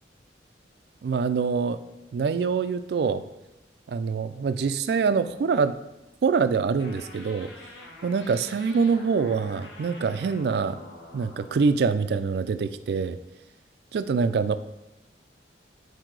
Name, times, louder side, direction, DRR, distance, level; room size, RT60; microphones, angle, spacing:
voice 1, 1.0-1.8 2.1-3.2 3.9-5.8 6.2-7.5 8.0-10.8 11.1-13.2 13.9-14.6, right 5 dB, 60° right, 12 dB, 0.3 m, -25 dB
sound 1, 6.8-11.7, left 2 dB, 80° left, 1.3 m, -46 dB
7.5 x 2.7 x 4.6 m, 0.97 s
head